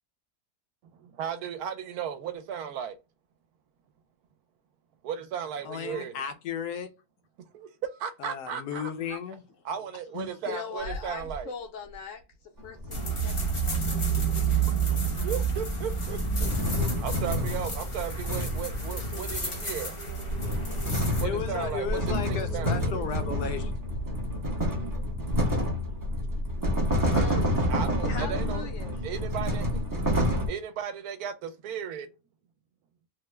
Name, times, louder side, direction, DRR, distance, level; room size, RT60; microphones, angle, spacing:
voice 1, 1.0-3.0 5.0-6.1 7.5-9.2 9.6-11.5 15.2-16.5 17.0-19.9 21.2-22.8 27.7-28.7 29.0-29.9 30.5-32.1, right 8 dB, 75° right, 1.0 m, -35 dB
voice 2, 5.6-6.9 8.2-9.4 21.2-23.7, left 7 dB, 80° left, 1.2 m, -34 dB
voice 3, 10.1-12.2 12.6-13.4 13.6-14.3 27.1-27.7 28.1-29.0, left 6 dB, 65° left, 0.8 m, -40 dB
sound 1, 10.8-11.4 11.8-12.3 12.9-13.0 13.4-15.7 16.1-16.3 16.7-24.2 24.7-24.8, right 4 dB, 50° right, 0.9 m, -44 dB
sound 2, 12.6-13.9 14.9-19.5 20.0-30.5, equal, 35° right, 0.3 m, -29 dB
sound 3, 12.9-21.2, right 5 dB, 45° left, 0.4 m, -30 dB
3.3 x 2.1 x 3.1 m
omnidirectional pair, 1.7 m